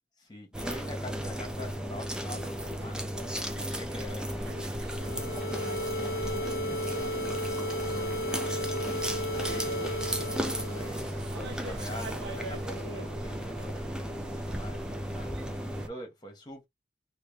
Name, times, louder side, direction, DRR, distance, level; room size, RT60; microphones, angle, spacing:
voice 1, 0.2-7.3 7.9-9.9 10.5-15.4 15.8-16.7, left 1 dB, 25° left, 1.3 m, -46 dB
sound 1, 0.5-15.9, equal, 5° right, 0.4 m, -35 dB
sound 2, 0.9-15.9, right 2 dB, 85° right, 1.0 m, -46 dB
sound 3, 4.9-11.0, equal, 55° left, 0.7 m, -34 dB
3.2 x 2.8 x 3.2 m
head